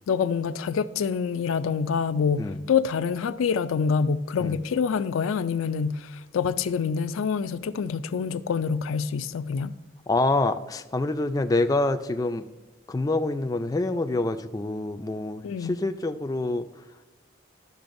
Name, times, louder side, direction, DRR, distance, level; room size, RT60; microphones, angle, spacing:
voice 1, 0.1-9.8 15.4-15.8, left 6 dB, 90° left, 0.4 m, -26 dB
voice 2, 10.1-12.4 12.9-16.7, left 2 dB, 20° left, 0.3 m, -26 dB
12.0 x 6.9 x 2.6 m
head